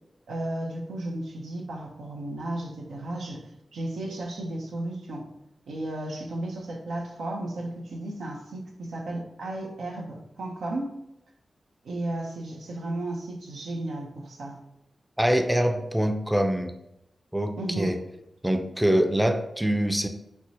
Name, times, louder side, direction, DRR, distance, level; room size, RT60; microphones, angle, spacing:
voice 1, 0.3-5.3 5.7-11.0 11.8-14.6 17.6-18.0, right 1 dB, 90° right, 0 dB, 0.5 m, -34 dB
voice 2, 15.2-16.7 17.3-18.0 18.4-20.1, equal, 5° right, 5 dB, 0.4 m, -24 dB
4.4 x 2.0 x 2.6 m, 0.85 s
cardioid pair, 45°, 0 cm